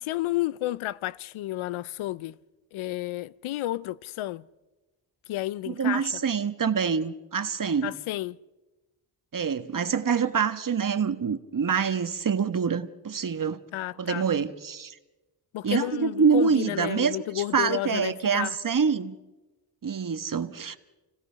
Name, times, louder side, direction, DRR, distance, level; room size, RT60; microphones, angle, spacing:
voice 1, 0.0-2.4 2.7-4.5 5.3-6.1 7.8-8.4 13.7-14.3 15.5-18.6, left 15 dB, 90° left, 0.6 m, -31 dB
voice 2, 5.7-7.9 9.3-13.6 14.0-14.9 15.6-19.1 19.8-20.8, right 6 dB, 45° right, 1.3 m, -26 dB
29.5 x 16.5 x 5.7 m
cardioid pair, 60°, 47 cm